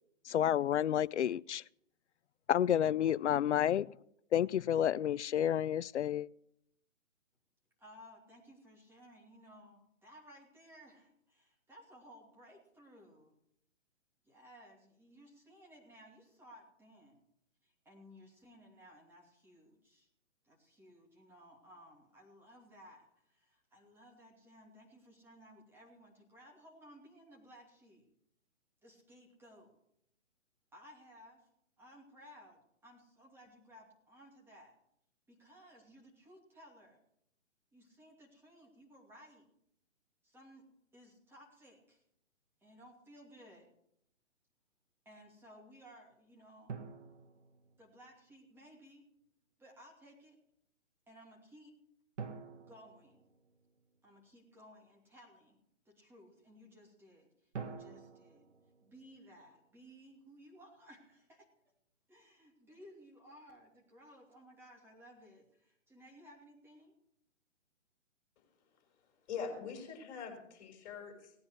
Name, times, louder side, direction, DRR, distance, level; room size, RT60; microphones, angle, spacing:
voice 1, 0.3-1.6 2.5-3.9 4.3-6.3, left 10 dB, 65° left, 0.5 m, -30 dB
voice 2, 7.8-13.3 14.2-17.2 17.6-20.1 20.4-28.1 28.8-29.7 30.7-31.5 31.8-34.7 35.3-37.0 37.7-39.4 40.2-40.7 40.9-42.0 42.6-43.7 45.0-46.8 47.8-49.0 49.6-50.4 51.1-51.7 52.6-53.2 54.0-55.6 55.8-58.4 58.8-61.5 62.1-66.9, equal, 5° right, 2.6 m, -58 dB
sound 1, 46.7-48.3 52.2-54.1 57.5-59.8, right 5 dB, 65° right, 1.8 m, -48 dB
voice 3, 69.3-71.3, left 6 dB, 35° left, 5.2 m, -43 dB
17.5 x 9.6 x 4.8 m
figure-of-eight pair, 140°, 38 cm